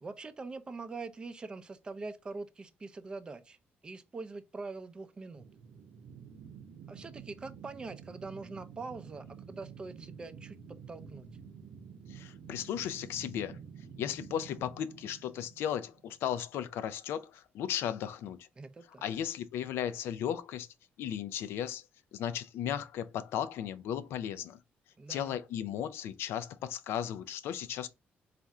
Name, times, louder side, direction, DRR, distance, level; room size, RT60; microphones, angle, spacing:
voice 1, 0.0-3.6 3.8-5.4 6.9-10.6 10.9-11.3 18.6-19.1 25.0-25.4, right 3 dB, 25° right, 0.4 m, -43 dB
sound 1, 5.3-16.3, right 6 dB, 85° right, 0.7 m, -50 dB
voice 2, 12.1-13.6 14.0-18.5 19.0-20.7 21.0-21.8 22.1-24.6 25.1-27.9, left 10 dB, 85° left, 0.4 m, -35 dB
4.2 x 2.5 x 3.5 m
cardioid pair, 135°, 4 cm